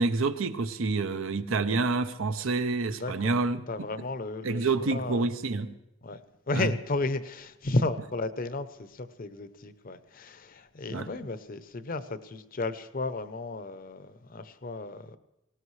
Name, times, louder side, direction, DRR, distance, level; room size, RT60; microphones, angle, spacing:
voice 1, 0.0-3.6 4.4-5.7 6.5-6.7 10.9-11.1, right 3 dB, 80° right, 0.7 m, -28 dB
voice 2, 3.0-3.3 3.7-5.3 6.0-6.2 6.5-15.2, left 2 dB, 45° left, 0.7 m, -33 dB
19.0 x 17.5 x 3.2 m
head